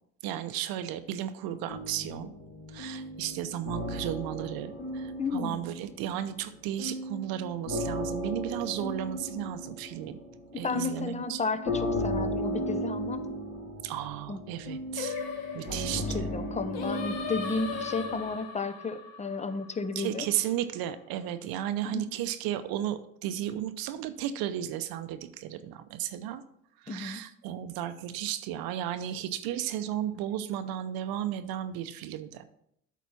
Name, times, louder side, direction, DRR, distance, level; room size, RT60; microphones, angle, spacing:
voice 1, 0.2-2.3 2.7-10.2 10.5-11.4 13.8-15.2 15.5-16.2 20.0-26.4 26.8-32.4, right 11 dB, 70° right, 10 dB, 0.7 m, -34 dB
sound 1, 1.7-6.4 6.8-18.3, equal, 50° left, 3.3 m, -36 dB
voice 2, 5.2-5.7 10.5-13.3 14.3-14.4 15.7-20.3 21.8-22.0 26.9-27.2, left 4 dB, 20° left, 11 dB, 0.8 m, -33 dB
Singing, 15.0-20.3, left 6 dB, 70° left, 1.4 m, -38 dB
8.3 x 4.1 x 5.9 m, 0.72 s
supercardioid pair, 75°, 38 cm